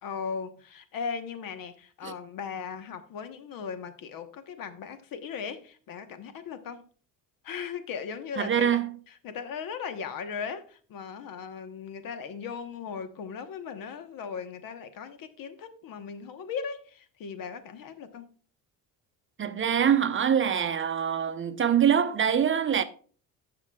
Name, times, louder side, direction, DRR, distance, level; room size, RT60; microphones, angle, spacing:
voice 1, 0.0-6.8 7.4-8.7 9.2-18.3, left 6 dB, 65° left, 1.1 m, -38 dB
voice 2, 8.4-8.9 19.4-22.8, right 8 dB, 35° right, 0.7 m, -24 dB
16.0 x 5.9 x 2.3 m
cardioid pair, 95°, 37 cm